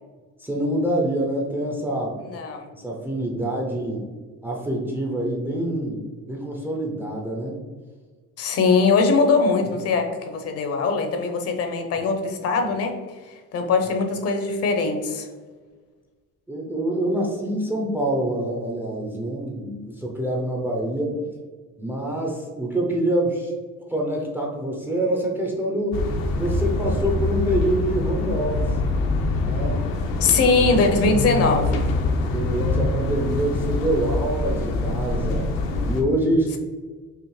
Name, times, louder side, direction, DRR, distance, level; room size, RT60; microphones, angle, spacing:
voice 1, 0.4-2.2 2.7-4.0 4.4-6.0 6.3-7.6 16.5-21.3 21.8-23.5 23.9-26.0 26.4-28.9 29.4-29.9 30.2-30.4 32.2-35.5 35.8-36.6, right 1 dB, 5° right, -1 dB, 0.4 m, -26 dB
voice 2, 2.2-2.7 8.4-12.9 13.3-15.3 30.2-31.8, left 4 dB, 45° left, 4 dB, 0.6 m, -21 dB
sound 1, 25.9-36.0, left 2 dB, 85° left, 0.7 m, -24 dB
5.6 x 2.0 x 3.0 m, 1.4 s
cardioid pair, 145°, 33 cm